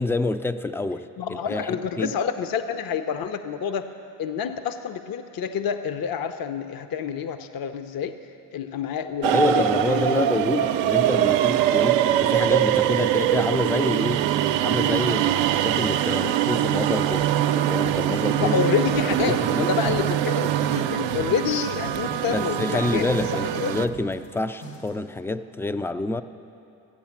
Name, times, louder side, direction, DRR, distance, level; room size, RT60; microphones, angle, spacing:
voice 1, 0.0-2.2 9.3-18.6 19.2-19.7 22.3-26.2, left 2 dB, 5° left, 11 dB, 0.3 m, -27 dB
voice 2, 1.2-3.9 4.2-8.2 8.5-10.3 10.6-10.7 18.4-23.1 23.6-23.7, left 7 dB, 50° left, 9 dB, 0.7 m, -28 dB
sound 1, 9.2-23.9, right 11 dB, 75° right, 0.6 m, -23 dB
sound 2, 17.6-25.0, equal, 85° left, 3.6 m, -42 dB
13.0 x 8.6 x 7.1 m, 2.8 s
supercardioid pair, 65°, 46 cm